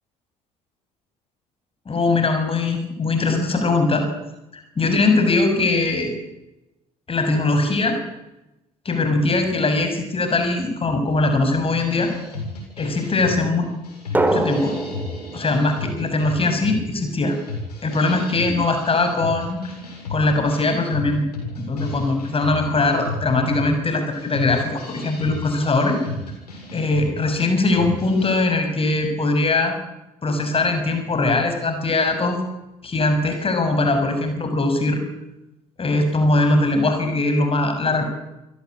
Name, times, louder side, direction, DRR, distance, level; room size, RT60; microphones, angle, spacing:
voice 1, 1.8-4.1 4.5-6.2 7.1-8.0 8.8-12.1 12.8-13.7 14.3-14.7 15.3-17.4 17.8-19.6 20.1-21.2 21.6-26.0 26.7-29.7 30.2-32.4 32.8-35.0 35.8-38.1, left 2 dB, 30° left, 6 dB, 6.7 m, -21 dB
sound 1, 11.7-28.4, left 2 dB, 80° left, 7.3 m, -34 dB
Drum, 14.1-16.9, right 2 dB, 10° right, 4.0 m, -25 dB
28.5 x 18.0 x 8.6 m, 0.95 s
figure-of-eight pair, 55°, 20 cm